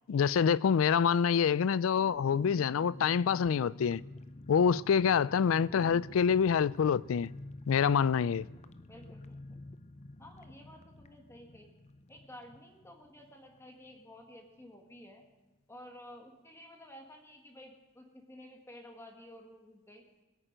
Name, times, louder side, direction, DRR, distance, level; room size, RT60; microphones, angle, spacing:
voice 1, 0.1-4.0 4.5-7.3 7.7-8.5, left 7 dB, 85° left, 0.4 m, -26 dB
sound 1, 2.0-14.3 14.6-14.7 15.0-15.2, left 2 dB, 35° left, 0.6 m, -50 dB
voice 2, 5.7-6.2 8.9-9.6 10.2-11.7 12.1-15.2 15.7-20.0, left 1 dB, 15° left, 1.8 m, -52 dB
21.5 x 8.9 x 5.1 m
head